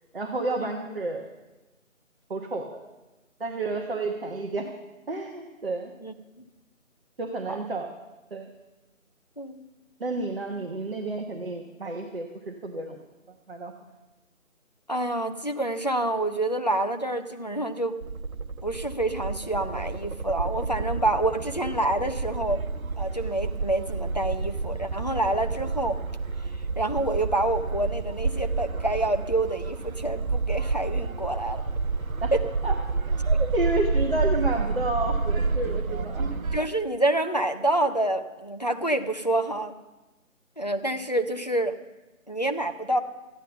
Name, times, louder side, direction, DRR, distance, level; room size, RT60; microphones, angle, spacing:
voice 1, 0.1-1.2 2.3-2.8 3.4-4.7 5.1-5.9 7.2-7.9 8.3-8.5 10.0-13.0 13.5-13.7 32.2-32.3 32.6-32.7 33.2-36.3, right 2 dB, 45° right, 1 dB, 1.2 m, -30 dB
voice 2, 6.0-6.4 7.5-7.6 9.4-9.6 14.9-18.0 18.6-22.6 23.0-26.0 26.8-31.6 33.3-33.4 36.5-39.7 40.6-41.8 42.3-43.0, right 1 dB, 30° left, 7 dB, 0.5 m, -27 dB
sound 1, 18.0-36.6, right 4 dB, 90° right, 1.0 m, -29 dB
13.5 x 9.8 x 6.8 m, 1.1 s
figure-of-eight pair, 165°, 41 cm